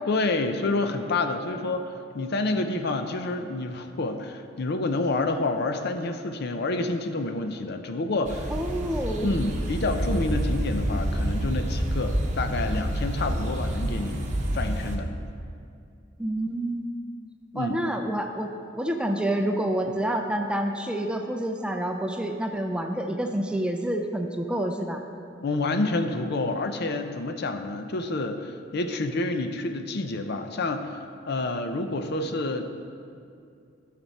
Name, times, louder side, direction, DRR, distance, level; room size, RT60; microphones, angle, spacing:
voice 1, 0.1-8.5 9.2-15.1 17.5-17.8 19.8-20.0 25.4-32.6, left 2 dB, 55° left, 7 dB, 0.5 m, -28 dB
sound 1, 8.2-15.0, equal, 35° right, 0.9 m, -28 dB
voice 2, 8.5-9.3 16.2-16.9 17.6-25.0, right 1 dB, 5° right, 4 dB, 0.4 m, -28 dB
12.5 x 6.0 x 4.1 m, 2.4 s
head